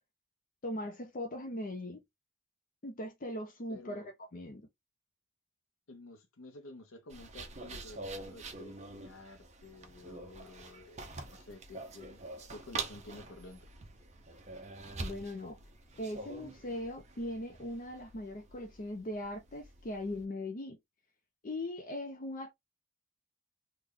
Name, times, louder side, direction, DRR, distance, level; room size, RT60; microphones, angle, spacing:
voice 1, 0.6-2.0 2.8-4.0 4.3-4.7 15.0-15.6 16.0-20.8 21.4-22.5, left 1 dB, 40° left, 0.6 m, -39 dB
voice 2, 3.7-4.1 5.9-12.2 12.5-13.7, left 2 dB, 85° left, 0.7 m, -51 dB
sound 1, 7.1-20.2, right 3 dB, 35° right, 0.7 m, -46 dB
3.4 x 2.2 x 3.7 m
head